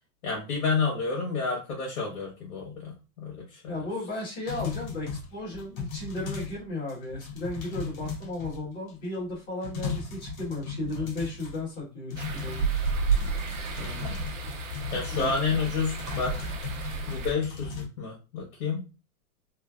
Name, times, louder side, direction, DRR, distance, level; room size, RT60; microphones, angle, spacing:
voice 1, 0.2-3.8 7.7-7.9 10.9-11.1 13.7-14.2 14.9-16.3 17.1-18.9, left 4 dB, 85° left, -2 dB, 1.3 m, -30 dB
voice 2, 3.7-12.6 15.1-15.4, left 2 dB, 20° left, -6 dB, 1.2 m, -35 dB
sound 1, 4.5-6.6 6.9-8.9 9.3-9.4 9.6-11.8 12.1-17.9, left 5 dB, 65° left, 1.1 m, -37 dB
sound 2, 12.2-17.3, right 4 dB, 60° right, 0.9 m, -31 dB
3.2 x 2.1 x 2.3 m, 0.31 s
hypercardioid pair, 165°, 44 cm